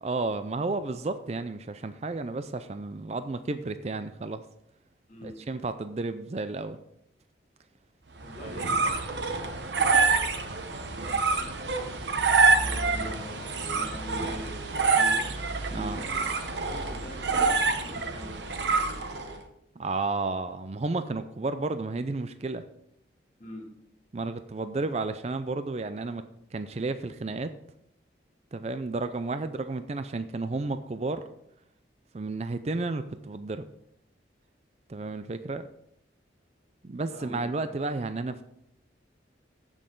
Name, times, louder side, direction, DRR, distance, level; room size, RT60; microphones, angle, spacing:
voice 1, 0.0-4.5 5.2-6.8 8.4-8.5 15.7-16.0 19.8-22.6 24.1-26.2 26.5-27.5 28.5-31.2 32.1-33.6 34.9-35.7 36.8-38.4, right 3 dB, 35° right, 10 dB, 0.4 m, -32 dB
voice 2, 5.1-5.4 8.2-10.9 11.3-19.5 23.4-23.7 37.1-37.7, equal, 45° left, -1 dB, 2.7 m, -44 dB
sound 1, 8.2-19.4, right 4 dB, 75° right, 1.0 m, -26 dB
15.0 x 6.2 x 3.8 m, 0.76 s
head